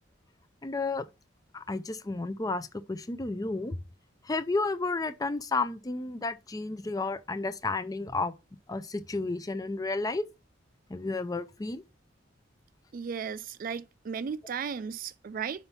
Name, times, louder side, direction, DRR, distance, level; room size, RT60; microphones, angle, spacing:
voice 1, 0.6-1.0 1.5-3.8 4.2-8.3 8.7-10.2 10.9-11.8, left 3 dB, 20° left, 0.4 m, -32 dB
voice 2, 12.9-15.7, right 6 dB, 45° right, 0.4 m, -35 dB
5.7 x 4.4 x 5.5 m
head